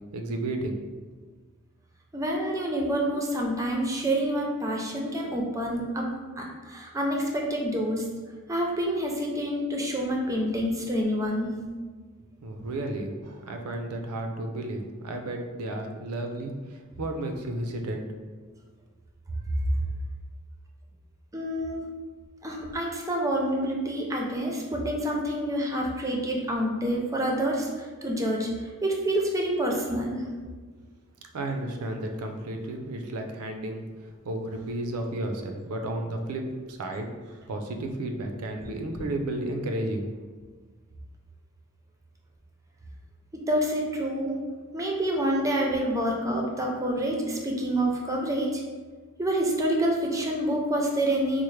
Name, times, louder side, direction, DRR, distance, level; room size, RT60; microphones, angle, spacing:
voice 1, 0.1-0.8 12.4-18.1 31.3-40.1, right 1 dB, 90° right, 4 dB, 0.5 m, -33 dB
voice 2, 2.1-6.1 6.4-8.0 8.5-11.5 21.3-21.9 22.4-28.5 28.8-30.2 43.3-44.4 44.7-48.6 49.2-51.4, right 1 dB, 15° right, -1 dB, 0.5 m, -27 dB
4.4 x 2.0 x 3.1 m, 1.4 s
head